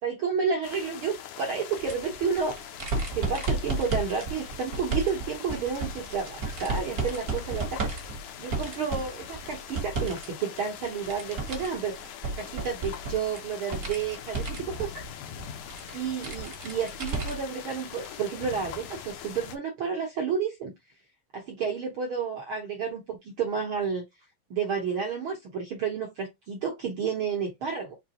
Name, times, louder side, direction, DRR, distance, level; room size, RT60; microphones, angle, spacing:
voice 1, 0.0-2.6 3.1-7.9 8.4-12.0 12.4-15.0 15.9-20.7 21.3-24.0 24.5-28.0, right 6 dB, 70° right, 1.2 m, -31 dB
sound 1, 0.6-19.6, left 9 dB, 75° left, 2.1 m, -43 dB
sound 2, 1.8-10.3 10.6-17.6 18.0-18.1 19.3-19.4, right 3 dB, 55° right, 1.0 m, -33 dB
5.9 x 3.0 x 3.0 m
omnidirectional pair, 3.9 m